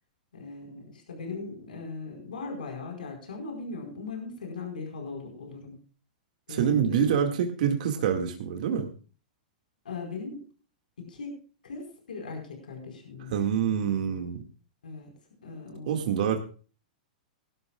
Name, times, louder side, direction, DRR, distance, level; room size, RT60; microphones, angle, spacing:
voice 1, 0.3-5.8 6.5-7.2 9.8-10.4 11.0-11.3 11.6-13.3 14.8-15.1 15.4-16.0, left 4 dB, 90° left, 2 dB, 4.6 m, -39 dB
voice 2, 6.5-8.9 13.3-14.4 15.9-16.4, right 8 dB, 65° right, 4 dB, 2.0 m, -26 dB
19.0 x 12.5 x 2.4 m, 0.38 s
hypercardioid pair, 125°, 5 cm